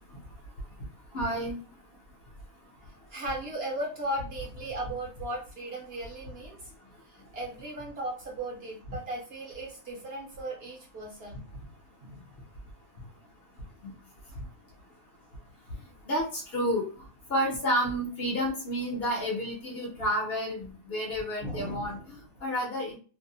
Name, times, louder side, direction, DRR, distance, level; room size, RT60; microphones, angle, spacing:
voice 1, 0.1-1.8 2.6-3.0 6.8-7.3 8.9-9.0 12.9-13.1 13.5-13.9 14.2-14.5 15.3-23.0, equal, 55° left, -2 dB, 0.9 m, -32 dB
voice 2, 3.1-6.7 7.0-11.4 12.0-12.3 21.4-22.2, right 1 dB, 55° right, -1 dB, 0.8 m, -37 dB
2.6 x 2.0 x 2.6 m, 0.39 s
omnidirectional pair, 1.4 m